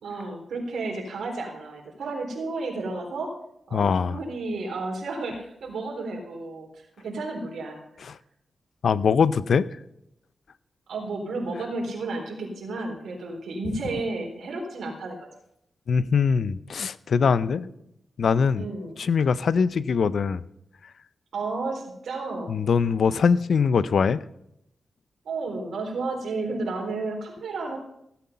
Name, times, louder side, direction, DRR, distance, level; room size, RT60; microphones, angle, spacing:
voice 1, 0.0-3.3 3.7-7.8 10.9-15.2 17.4-17.7 18.6-19.0 21.3-22.5 25.3-27.8, right 3 dB, 85° right, 1 dB, 3.8 m, -32 dB
voice 2, 3.7-4.2 8.0-8.2 8.8-9.7 15.9-17.7 18.2-18.7 19.0-20.4 22.5-24.2, left 6 dB, 70° left, 17 dB, 0.5 m, -22 dB
16.0 x 8.6 x 5.6 m, 0.79 s
cardioid pair, 70°, 0 cm